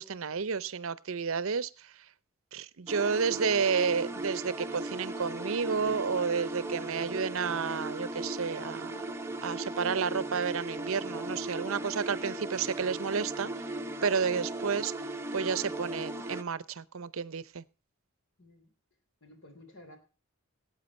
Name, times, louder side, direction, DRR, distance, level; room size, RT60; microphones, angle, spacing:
voice 1, 0.0-1.9 2.5-8.9 9.4-13.5 14.0-14.9 15.3-17.6, right 6 dB, 65° right, 18 dB, 0.6 m, -31 dB
sound 1, 2.9-16.4, right 2 dB, 10° right, 0.8 m, -37 dB
voice 2, 6.5-6.9 14.3-14.5 18.4-18.7 19.2-20.0, left 1 dB, 60° left, 7 dB, 3.4 m, -53 dB
17.5 x 8.7 x 4.2 m, 0.32 s
head